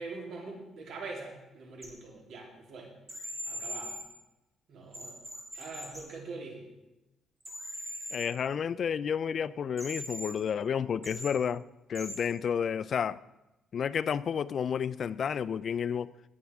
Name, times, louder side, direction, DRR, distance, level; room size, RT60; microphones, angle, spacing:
voice 1, 0.0-2.9 3.4-4.0 4.7-5.2 5.5-6.7, right 3 dB, 65° right, 0 dB, 3.2 m, -43 dB
sound 1, 1.8-1.9 3.1-4.0 4.9-6.0 7.4-8.3 9.8-10.3 11.0-11.3 11.9-12.2, equal, 20° right, 3.6 m, -40 dB
voice 2, 8.1-11.6 11.9-13.2 13.7-16.1, left 7 dB, 50° left, 17 dB, 0.3 m, -31 dB
19.0 x 8.3 x 3.5 m, 0.98 s
cardioid pair, 125°, 0 cm